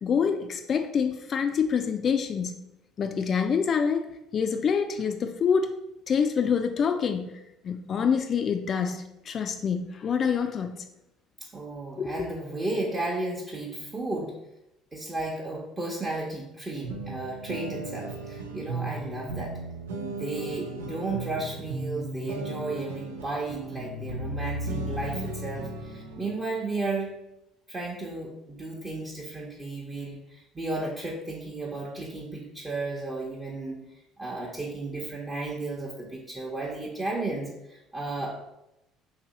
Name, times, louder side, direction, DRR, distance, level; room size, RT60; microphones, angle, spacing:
voice 1, 0.0-2.6 3.0-4.1 4.3-5.7 6.1-10.8 12.0-12.3, left 6 dB, 45° left, 6 dB, 0.3 m, -26 dB
voice 2, 11.5-14.3 14.9-19.6 19.9-27.2 27.7-33.8 34.2-38.4, right 2 dB, 25° right, -4 dB, 0.8 m, -34 dB
sound 1, 16.8-26.3, right 2 dB, 90° right, 0.3 m, -35 dB
2.7 x 2.7 x 4.0 m, 0.87 s
hypercardioid pair, 65°, 0 cm